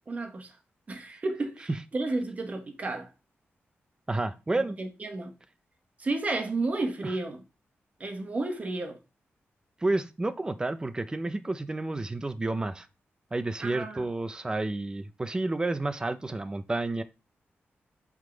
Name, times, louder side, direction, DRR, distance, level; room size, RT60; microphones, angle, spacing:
voice 1, 0.1-0.6 0.9-3.1 4.5-5.3 6.0-7.4 8.0-9.0 13.6-14.1, right 2 dB, 35° right, 1.2 m, -32 dB
voice 2, 4.1-4.8 9.8-12.9 13.3-17.0, right 2 dB, 20° right, 0.5 m, -30 dB
8.0 x 3.7 x 3.9 m
wide cardioid pair, 140°, 4 cm